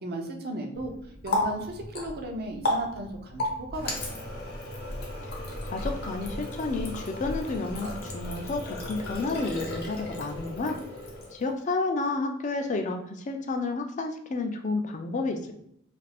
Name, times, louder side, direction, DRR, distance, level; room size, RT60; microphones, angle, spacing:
voice 1, 0.0-0.9 1.2-4.3, right 1 dB, 50° right, 3 dB, 0.5 m, -36 dB
Water tap faucet, 0.7-11.5, left 1 dB, 50° left, 0.8 m, -34 dB
voice 2, 5.6-10.8 11.3-15.5, left 3 dB, 35° left, 5 dB, 0.4 m, -31 dB
2.4 x 2.4 x 3.3 m, 0.73 s
head